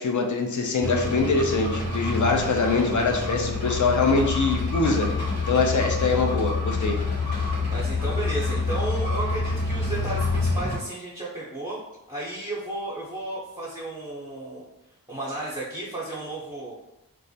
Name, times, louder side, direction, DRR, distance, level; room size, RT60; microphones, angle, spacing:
voice 1, 0.0-5.1 5.5-7.0, left 3 dB, 50° left, 2 dB, 0.5 m, -23 dB
sound 1, 0.8-10.8, left 3 dB, 75° left, 1.1 m, -27 dB
voice 2, 7.7-11.8 12.1-14.6 15.1-16.7, right 2 dB, 15° right, -8 dB, 0.7 m, -33 dB
2.3 x 2.0 x 2.7 m, 0.90 s
cardioid pair, 45°, 38 cm